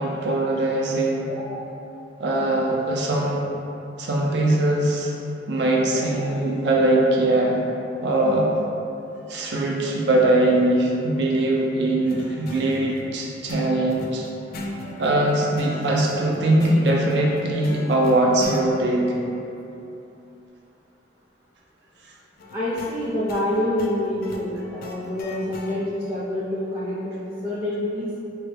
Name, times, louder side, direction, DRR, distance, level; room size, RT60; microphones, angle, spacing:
voice 1, 0.0-1.3 2.2-3.5 4.0-5.1 5.5-7.6 8.0-8.5 9.3-14.3 15.0-19.1, right 1 dB, 65° right, -2 dB, 0.6 m, -21 dB
voice 2, 1.3-1.7 5.9-6.1 22.5-28.2, left 1 dB, 15° right, -10 dB, 0.5 m, -27 dB
sound 1, 12.1-18.7 22.4-25.8, left 1 dB, 55° left, 0.4 m, -38 dB
4.4 x 2.3 x 3.3 m, 2.9 s
head